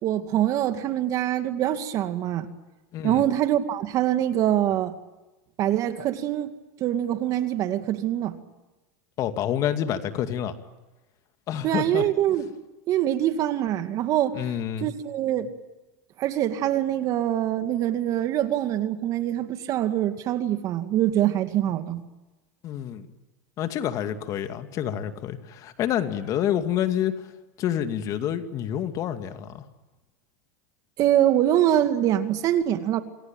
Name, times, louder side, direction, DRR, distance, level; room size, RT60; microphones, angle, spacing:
voice 1, 0.0-2.5 3.0-4.9 5.6-6.5 6.8-8.3 11.6-12.5 12.9-14.4 14.8-15.5 16.2-22.0 31.0-33.0, right 12 dB, 45° right, 2.2 m, -24 dB
voice 2, 2.9-3.2 9.2-10.6 11.5-12.0 14.3-14.9 22.6-23.1 23.6-27.3 27.6-29.6, left 10 dB, 40° left, 2.4 m, -28 dB
27.5 x 21.5 x 9.1 m
supercardioid pair, 120°, 8 cm